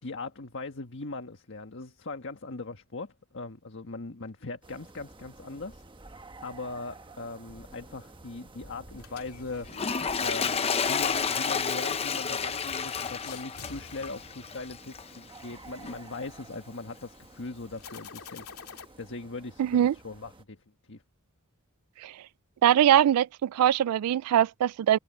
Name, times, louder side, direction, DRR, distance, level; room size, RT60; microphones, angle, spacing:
voice 1, 0.0-5.8 6.4-9.8 10.2-18.4 18.7-21.0, left 3 dB, 60° left, 1.5 m, -40 dB
sound 1, 4.6-20.4, right 2 dB, 25° right, 1.2 m, -52 dB
sound 2, 8.9-15.1 17.8-18.9, left 6 dB, 85° left, 2.3 m, -49 dB
Toilet flush, 9.7-15.2 15.8-16.0, left 6 dB, 25° left, 0.7 m, -30 dB
voice 2, 19.6-19.9 22.0-22.1 22.6-25.0, right 10 dB, 80° right, 0.3 m, -22 dB
head